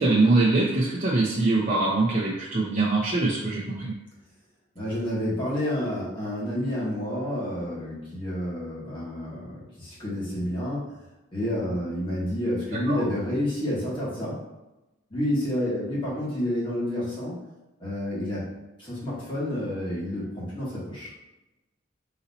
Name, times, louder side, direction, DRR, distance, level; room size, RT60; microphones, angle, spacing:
voice 1, 0.0-3.9 12.9-13.0, right 2 dB, 40° right, -6 dB, 0.7 m, -23 dB
voice 2, 4.7-10.8 11.3-14.4 15.1-17.4 17.8-18.4 18.8-21.1, left 1 dB, 25° left, -8 dB, 1.4 m, -29 dB
4.0 x 2.8 x 4.0 m, 0.99 s
head